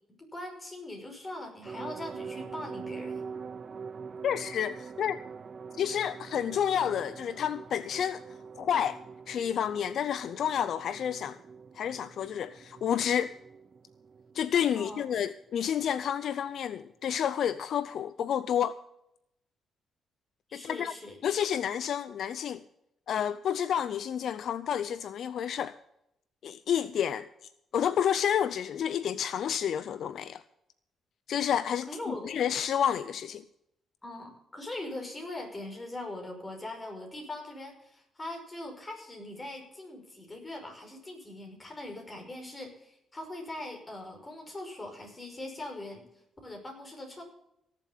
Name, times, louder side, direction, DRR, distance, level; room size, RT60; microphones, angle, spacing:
voice 1, 0.2-3.2 14.7-15.2 20.5-21.2 31.9-32.4 34.0-46.0 46.4-47.2, left 1 dB, 25° left, 5.6 m, -41 dB
sound 1, 1.6-15.8 16.1-16.2 16.5-16.6, right 5 dB, 45° right, 0.7 m, -44 dB
voice 2, 4.2-5.2 5.8-8.2 8.6-9.0 9.3-11.4 11.8-13.3 14.3-18.8 20.5-20.9 21.2-22.6 23.1-25.7 26.4-27.3 27.7-30.4 31.3-33.4, left 9 dB, 65° left, 0.5 m, -30 dB
17.5 x 7.6 x 7.2 m
cardioid pair, 90°, 0 cm